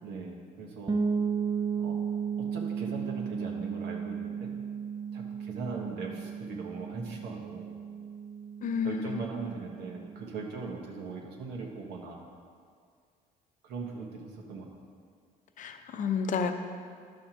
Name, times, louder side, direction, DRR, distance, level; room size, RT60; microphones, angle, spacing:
voice 1, 0.0-0.9 1.8-2.1 2.4-4.5 5.1-7.7 8.8-12.2 13.6-14.7, right 4 dB, 85° right, -1 dB, 1.4 m, -40 dB
sound 1, 0.9-10.6, right 6 dB, 25° right, 0.5 m, -35 dB
voice 2, 8.6-9.2 15.6-16.5, left 6 dB, 50° left, 6 dB, 0.7 m, -30 dB
11.5 x 6.4 x 3.0 m, 2.1 s
cardioid pair, 110°, 17 cm